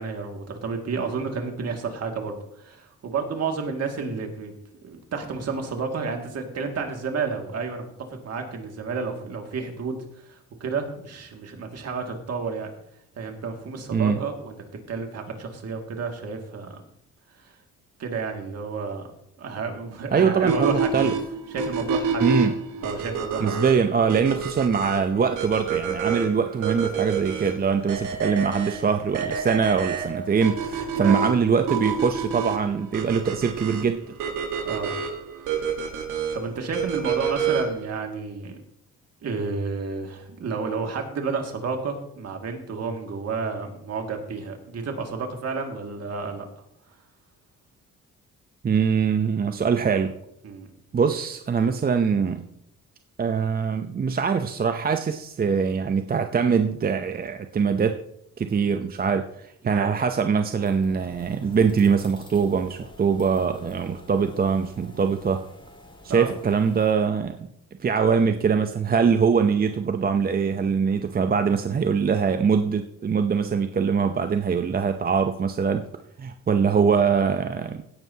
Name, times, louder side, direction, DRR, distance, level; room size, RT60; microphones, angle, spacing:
voice 1, 0.0-4.5 4.8-12.7 13.2-14.6 14.9-16.8 17.4-17.5 18.0-19.1 19.4-21.1 21.5-22.6 22.8-23.5 31.0-31.3 34.6-34.9 36.3-38.6 39.2-46.5 50.4-50.7 59.6-60.0 66.1-66.4 76.7-76.8, right 4 dB, 55° right, 3 dB, 2.2 m, -31 dB
voice 2, 20.1-21.1 22.2-22.5 23.4-34.1 48.6-50.1 50.9-52.5 53.2-58.0 58.4-65.4 66.1-67.4 67.8-75.8 76.2-77.8, right 6 dB, 30° right, 7 dB, 0.6 m, -23 dB
sound 1, 20.5-37.9, right 6 dB, 85° right, 1.5 m, -28 dB
sound 2, 60.6-66.9, left 2 dB, 15° left, 2.1 m, -49 dB
16.5 x 9.2 x 2.8 m, 0.75 s
cardioid pair, 90°, 30 cm